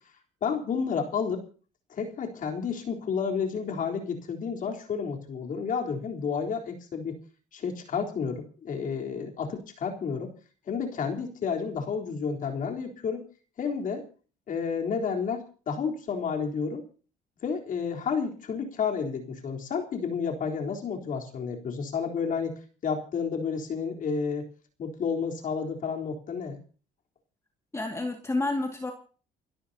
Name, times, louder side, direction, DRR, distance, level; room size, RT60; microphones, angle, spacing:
voice 1, 0.4-1.4 1.9-7.2 7.5-10.3 10.7-13.2 13.6-14.0 14.5-16.8 17.4-24.5 24.8-26.6, left 6 dB, 50° left, 2 dB, 3.8 m, -31 dB
voice 2, 27.7-28.9, left 2 dB, 15° left, 3 dB, 2.2 m, -29 dB
29.5 x 12.5 x 2.9 m, 0.39 s
cardioid pair, 110°, 17 cm